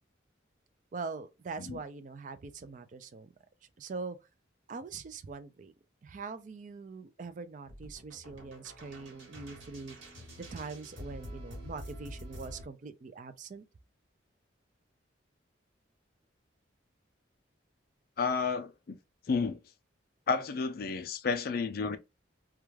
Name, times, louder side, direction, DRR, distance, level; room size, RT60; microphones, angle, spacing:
voice 1, 0.9-3.3 3.8-4.2 4.7-5.7 6.0-10.1 10.5-13.6, right 4 dB, 40° right, 0.3 m, -43 dB
sound 1, 7.7-12.6, equal, 90° right, 1.3 m, -47 dB
voice 2, 18.2-19.0 19.3-19.6 20.3-22.0, left 5 dB, 50° left, 0.4 m, -31 dB
2.3 x 2.2 x 3.1 m
head